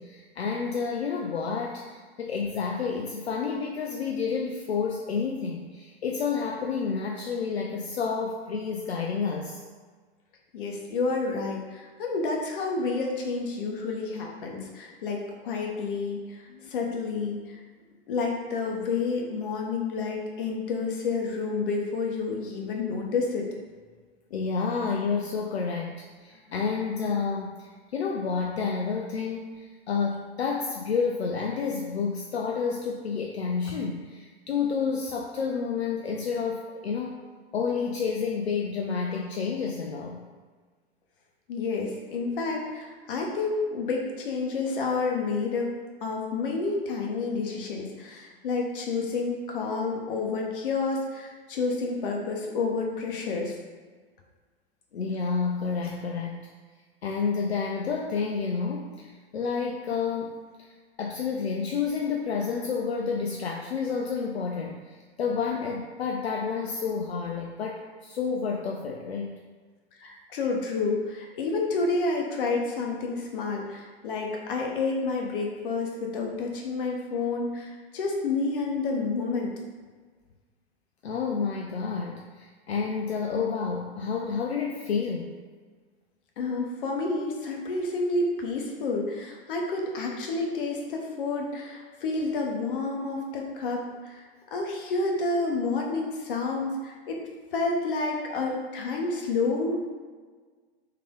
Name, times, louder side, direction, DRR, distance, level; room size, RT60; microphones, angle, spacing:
voice 1, 0.0-9.6 14.8-14.9 16.5-16.7 24.3-25.9 26.2-37.2 37.5-40.2 54.9-56.4 57.0-60.7 61.0-69.4 70.0-70.1 81.0-85.4, left 5 dB, 80° left, 0 dB, 0.5 m, -30 dB
voice 2, 10.5-17.6 18.1-23.5 41.5-45.7 46.0-53.5 70.3-79.5 86.4-97.2 97.5-99.8, left 3 dB, 55° left, 0 dB, 0.9 m, -29 dB
3.3 x 3.3 x 3.7 m, 1.5 s
figure-of-eight pair, 95°, 32 cm